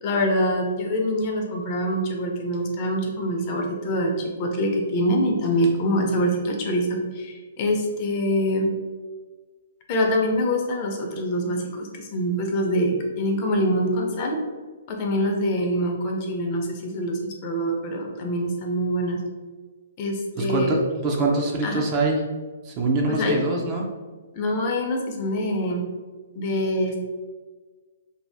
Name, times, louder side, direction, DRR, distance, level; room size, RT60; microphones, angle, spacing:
voice 1, 0.0-8.7 9.9-14.4 14.9-19.2 20.0-20.7 21.6-21.9 23.1-23.4 24.3-25.9 26.3-27.0, equal, 40° left, 1 dB, 0.6 m, -25 dB
voice 2, 20.4-22.2 22.7-23.9, right 2 dB, 30° right, 0 dB, 0.6 m, -24 dB
2.7 x 2.5 x 3.4 m, 1.4 s
hypercardioid pair, 135°, 0 cm